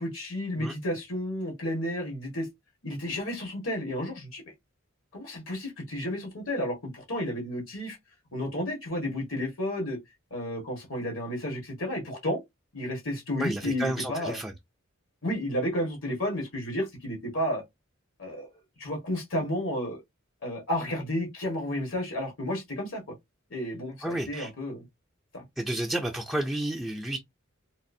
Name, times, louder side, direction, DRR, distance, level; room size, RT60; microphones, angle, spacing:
voice 1, 0.0-2.5 2.8-4.4 5.1-8.0 8.3-10.0 10.3-12.4 12.7-14.4 15.2-17.6 18.2-18.5 18.8-20.0 20.4-23.0 23.5-24.8 25.3-25.4, left 1 dB, 80° left, 1.5 m, -32 dB
voice 2, 13.4-14.5 24.0-24.5 25.6-27.2, right 1 dB, ahead, 0.4 m, -31 dB
4.0 x 2.5 x 2.6 m
head